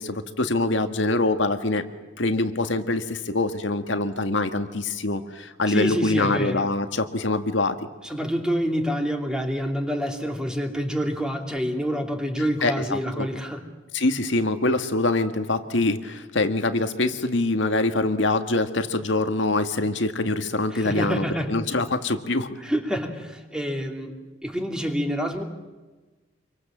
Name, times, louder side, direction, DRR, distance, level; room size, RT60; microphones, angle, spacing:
voice 1, 0.0-1.8 2.2-7.8 12.6-13.3 13.9-22.5, left 2 dB, 75° left, 7 dB, 1.8 m, -24 dB
voice 2, 5.7-6.7 8.0-13.6 20.7-21.5 22.6-25.4, equal, 5° right, 3 dB, 2.7 m, -27 dB
26.5 x 24.0 x 7.5 m, 1.2 s
head